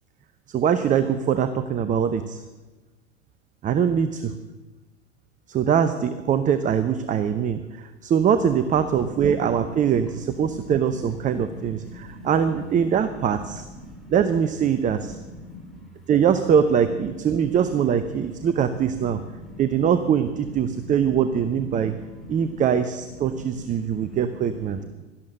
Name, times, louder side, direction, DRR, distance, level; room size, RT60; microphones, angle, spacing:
voice 1, 0.5-2.4 3.6-4.3 5.5-13.7 14.1-15.2 16.1-19.2 19.6-22.0 22.3-24.8, right 8 dB, 20° right, 11 dB, 0.8 m, -22 dB
voice 2, 11.7-12.3 13.8-14.1 15.2-15.8 18.4-18.5 19.4-19.6 21.9-22.4 24.0-24.1, left 1 dB, ahead, -1 dB, 4.9 m, -42 dB
17.0 x 12.5 x 6.6 m, 1.2 s
figure-of-eight pair, 90°, 36 cm